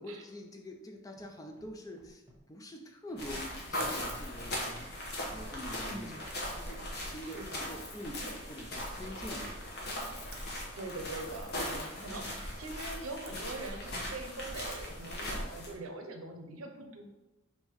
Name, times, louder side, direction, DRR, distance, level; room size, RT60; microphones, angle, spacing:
voice 1, 0.0-5.0 5.3-9.9 12.1-12.5, equal, 15° left, 4 dB, 0.3 m, -46 dB
Scratching (performance technique), 1.2-1.3 1.5-1.7 2.0-2.4 3.1-3.6 4.0-4.5 4.7-4.9 5.2-5.6 6.3-6.9 7.2-7.6, right 1 dB, 15° right, 1.1 m, -58 dB
sound 1, 3.2-15.7, left 1 dB, 50° left, 0.9 m, -39 dB
voice 2, 5.8-6.3 7.3-7.7 10.8-17.1, right 2 dB, 85° right, 4 dB, 0.7 m, -43 dB
sound 2, 6.2-8.2 8.5-8.6 9.8-10.8 11.0-11.1 11.8-12.3 12.9-13.9 14.2-15.1, right 4 dB, 50° right, 0.5 m, -55 dB
3.6 x 2.6 x 4.6 m, 1.0 s
head